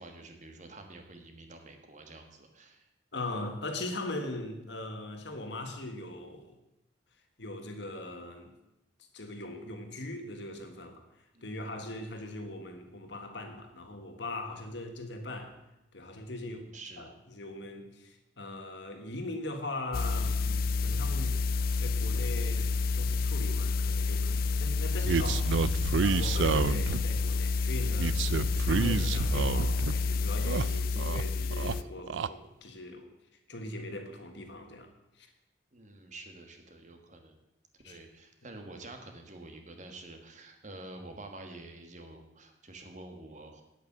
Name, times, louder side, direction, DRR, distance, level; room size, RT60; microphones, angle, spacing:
voice 1, 0.0-2.9 11.3-11.8 16.4-17.1 35.7-37.4 37.8-43.6, right 2 dB, 40° right, 5 dB, 1.5 m, -48 dB
voice 2, 3.1-6.5 7.4-8.5 9.1-11.0 11.4-15.6 15.9-16.6 17.0-21.4 21.8-25.6 26.0-33.1 33.5-34.9 35.2-35.3 37.8-38.0, left 2 dB, 65° left, 5 dB, 1.6 m, -40 dB
sound 1, 19.9-31.8, left 4 dB, 50° left, 0.4 m, -29 dB
sound 2, 25.0-27.2 28.0-30.0 30.3-31.2 31.5-32.3, right 5 dB, 80° right, 0.4 m, -29 dB
9.3 x 8.4 x 7.3 m, 0.92 s
head